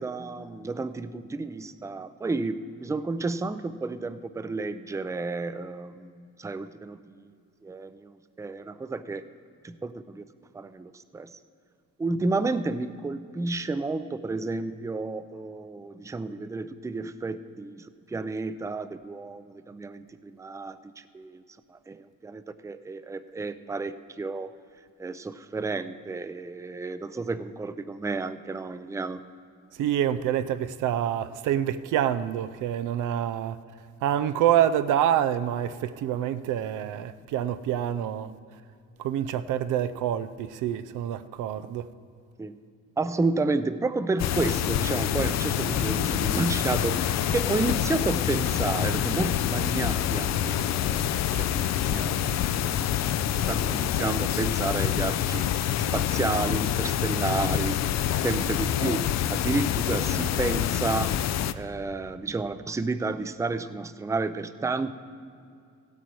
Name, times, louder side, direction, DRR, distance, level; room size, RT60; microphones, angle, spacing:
voice 1, 0.0-7.2 7.6-9.3 9.6-10.2 10.5-11.3 12.0-21.4 21.7-24.5 25.0-29.2 42.4-42.6 43.0-52.3 53.5-55.5 55.9-57.8 58.2-61.2 61.5-64.9, right 3 dB, 10° right, 0.4 m, -31 dB
voice 2, 29.8-33.6 34.0-38.3 39.0-41.9, right 10 dB, 85° right, 0.5 m, -27 dB
sound 1, 44.2-61.5, left 10 dB, 60° left, 0.5 m, -26 dB
16.0 x 8.5 x 4.6 m
cardioid pair, 90°, 30 cm